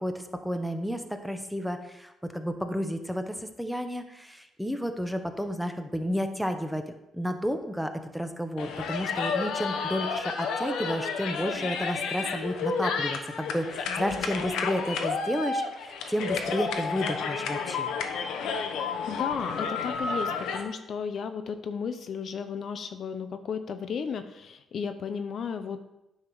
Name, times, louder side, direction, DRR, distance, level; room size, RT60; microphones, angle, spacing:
voice 1, 0.0-6.8 7.1-17.9, equal, ahead, 7 dB, 0.9 m, -31 dB
sound 1, 8.6-20.6, left 5 dB, 80° left, 0.9 m, -31 dB
voice 2, 13.9-14.5 18.5-18.7 19.1-25.8, left 6 dB, 60° left, 9 dB, 0.6 m, -34 dB
9.7 x 3.6 x 6.2 m, 0.91 s
cardioid pair, 90°, 0 cm